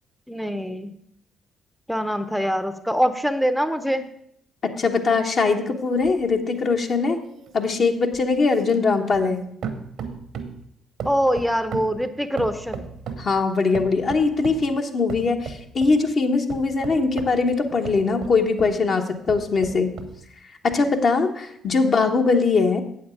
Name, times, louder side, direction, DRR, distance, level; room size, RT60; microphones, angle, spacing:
voice 1, 0.3-0.9 1.9-4.1 11.0-12.9 13.7-13.8 21.8-21.9, equal, ahead, 11 dB, 0.7 m, -24 dB
voice 2, 4.6-7.2 7.5-9.4 13.2-19.9 20.6-22.8, left 4 dB, 50° left, 3 dB, 1.1 m, -21 dB
sound 1, 6.0-9.4 9.6-10.6 11.0-13.3 13.7-14.7 15.1-16.0 16.5-18.8 19.2-20.2 20.7-20.8, right 6 dB, 65° right, 1.0 m, -36 dB
8.6 x 7.1 x 5.0 m, 0.72 s
hypercardioid pair, 50°, 0 cm